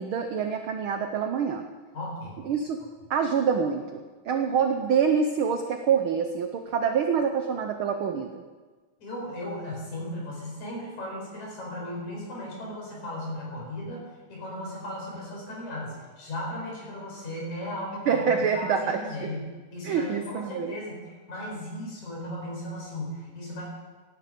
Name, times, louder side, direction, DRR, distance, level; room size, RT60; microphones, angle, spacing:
voice 1, 0.0-1.6 2.4-2.8 3.1-8.4 18.1-19.3 19.8-20.8, right 6 dB, 80° right, 6 dB, 1.1 m, -26 dB
voice 2, 1.9-2.4 9.0-18.2 18.5-19.5 19.7-23.6, left 1 dB, 80° left, -3 dB, 6.2 m, -36 dB
17.0 x 11.0 x 5.1 m, 1.4 s
omnidirectional pair, 3.3 m